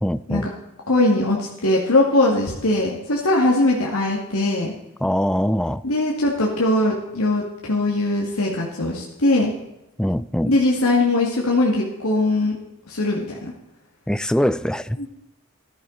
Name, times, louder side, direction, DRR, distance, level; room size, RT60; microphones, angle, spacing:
voice 1, 0.0-0.5 5.0-5.8 10.0-10.6 14.1-15.0, equal, 5° left, 0.3 m, -22 dB
voice 2, 0.9-4.7 5.8-9.5 10.5-12.6 12.9-13.5 15.0-15.1, left 2 dB, 85° left, 2.3 m, -20 dB
14.0 x 13.0 x 4.1 m
head